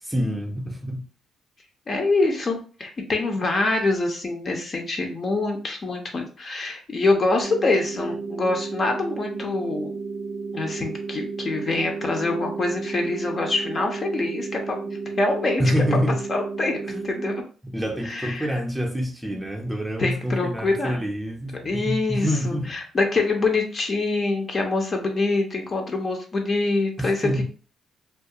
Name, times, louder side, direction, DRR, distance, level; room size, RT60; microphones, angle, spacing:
voice 1, 0.0-1.1 15.6-16.2 16.9-17.0 17.6-22.8 27.0-27.4, equal, 5° right, 0.6 m, -26 dB
voice 2, 1.9-9.9 10.5-14.8 15.2-15.6 16.3-17.3 18.0-18.6 20.0-21.0 21.6-27.4, left 3 dB, 40° left, 0.6 m, -25 dB
sound 1, 7.4-17.4, right 4 dB, 60° right, 0.4 m, -33 dB
2.3 x 2.2 x 2.7 m
cardioid pair, 90°, 0 cm